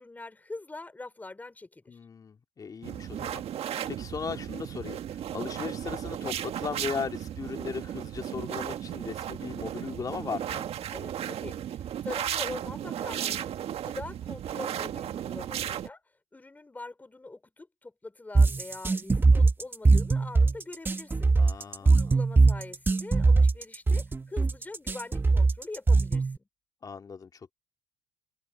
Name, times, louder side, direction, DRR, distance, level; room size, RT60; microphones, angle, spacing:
voice 1, 0.0-2.0 10.9-13.5 13.8-16.0 16.3-26.3, left 2 dB, 10° left, 4.9 m, -43 dB
voice 2, 1.9-10.7 14.7-14.9 21.4-22.2 26.8-27.5, left 5 dB, 30° left, 2.4 m, -38 dB
sound 1, 2.8-15.9, right 10 dB, 50° right, 1.7 m, -35 dB
sound 2, 18.3-26.4, right 3 dB, 15° right, 1.4 m, -21 dB
cardioid pair, 110°, 13 cm